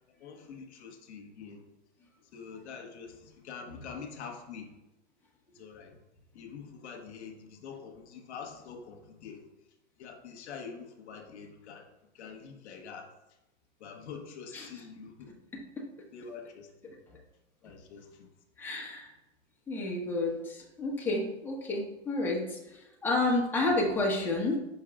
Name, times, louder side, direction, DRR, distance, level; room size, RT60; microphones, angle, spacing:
voice 1, 0.2-1.6 2.3-4.7 5.5-6.0 6.3-9.5 10.0-11.9 12.1-13.1 13.8-15.3 16.1-16.9 17.6-18.3, left 6 dB, 70° left, 3 dB, 1.1 m, -45 dB
voice 2, 15.5-15.8 16.8-17.0 17.7-17.8 18.6-19.1 19.7-24.6, left 2 dB, 5° left, -3 dB, 1.1 m, -31 dB
5.6 x 4.7 x 3.6 m, 0.94 s
hypercardioid pair, 130°, 34 cm